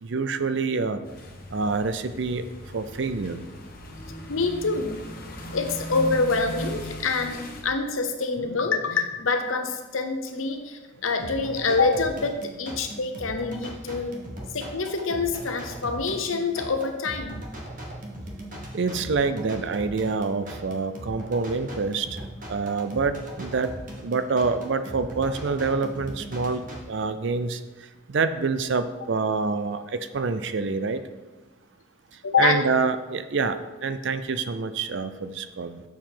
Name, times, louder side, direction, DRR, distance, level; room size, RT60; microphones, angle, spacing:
voice 1, 0.0-1.0 1.5-2.4 2.7-3.4 18.7-23.7 24.0-27.6 28.1-31.0 32.4-35.8, right 4 dB, 60° right, 10 dB, 0.5 m, -26 dB
sound 1, 1.1-7.6, equal, 45° left, 1.0 m, -38 dB
voice 2, 4.3-5.0 5.5-14.2 14.5-17.4 32.2-32.6, left 4 dB, 80° left, 6 dB, 0.9 m, -26 dB
sound 2, 11.2-26.8, right 1 dB, 40° right, 1.3 m, -39 dB
7.0 x 4.6 x 5.6 m, 1.2 s
head